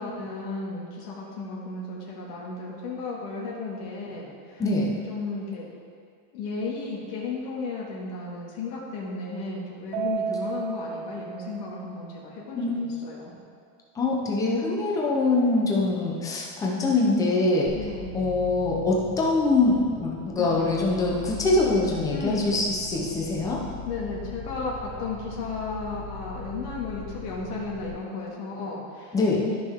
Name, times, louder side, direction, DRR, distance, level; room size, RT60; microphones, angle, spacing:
voice 1, 0.0-4.6 5.1-5.7 6.3-12.7 13.0-13.3 17.7-18.1 20.4-20.6 22.1-22.5 23.9-29.2 29.5-29.6, left 3 dB, 75° left, -4 dB, 1.9 m, -34 dB
voice 2, 4.6-4.9 12.5-12.7 14.0-17.7 18.1-23.6 29.1-29.4, left 2 dB, 10° left, -3 dB, 0.4 m, -24 dB
Keyboard (musical), 9.9-12.4, right 7 dB, 55° right, 0.7 m, -33 dB
sound 1, 17.7-27.9, left 3 dB, 25° right, 1.7 m, -41 dB
13.0 x 5.5 x 3.5 m, 2.3 s
cardioid pair, 175°, 47 cm